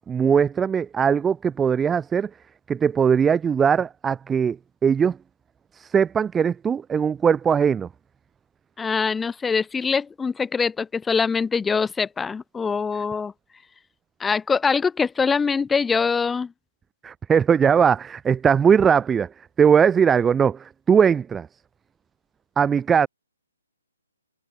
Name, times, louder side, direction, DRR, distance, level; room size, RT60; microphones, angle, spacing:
voice 1, 0.1-2.3 2.7-4.6 4.8-5.2 5.7-7.9 17.0-21.5 22.6-23.1, right 7 dB, 10° right, 0.8 m, -20 dB
voice 2, 8.8-13.3 14.2-16.5, left 5 dB, 10° left, 2.4 m, -23 dB
figure-of-eight pair, 135°, 0 cm